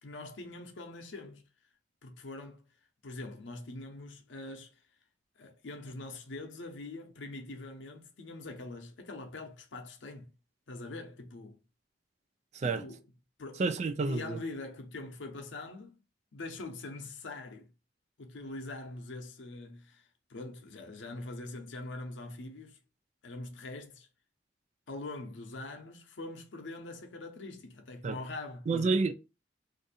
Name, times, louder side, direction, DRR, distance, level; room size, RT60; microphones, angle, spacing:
voice 1, 0.0-1.5 2.0-2.7 3.0-4.7 5.4-10.3 10.7-11.6 12.6-13.0 13.4-13.6 14.1-16.0 16.3-17.7 18.2-22.8 23.2-24.1 24.9-29.0, left 2 dB, 90° left, 0.7 m, -43 dB
voice 2, 13.6-14.4 28.0-28.2 28.7-29.1, right 4 dB, 40° right, 0.3 m, -29 dB
2.6 x 2.6 x 4.0 m
head